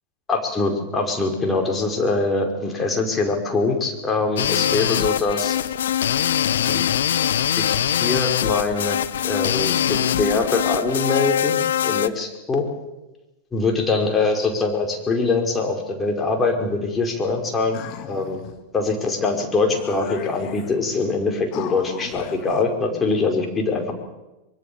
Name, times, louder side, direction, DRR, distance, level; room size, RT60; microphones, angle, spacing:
voice 1, 0.3-5.6 6.7-6.8 7.6-9.0 9.2-11.5 11.8-12.7 13.5-17.8 18.1-18.4 18.7-23.9, left 3 dB, 15° left, 2 dB, 5.3 m, -23 dB
sound 1, 4.4-12.1, left 10 dB, 60° left, 0.9 m, -22 dB
sound 2, 17.7-18.6 19.3-19.4 19.7-20.8 21.5-22.6, left 11 dB, 40° left, 2.1 m, -36 dB
24.5 x 23.5 x 7.2 m, 1.0 s
figure-of-eight pair, 90°, 0 cm